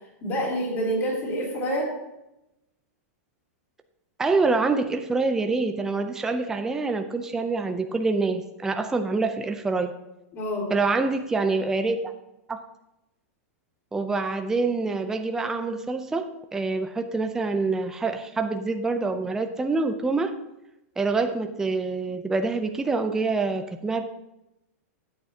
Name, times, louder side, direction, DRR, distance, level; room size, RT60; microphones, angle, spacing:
voice 1, 0.2-1.9 10.3-10.7, equal, 25° left, -5 dB, 3.1 m, -27 dB
voice 2, 4.2-9.9 10.7-12.1 12.5-12.6 13.9-20.3 21.0-24.0, right 3 dB, 5° right, 6 dB, 0.5 m, -26 dB
12.5 x 8.9 x 2.8 m, 0.90 s
supercardioid pair, 160°, 8 cm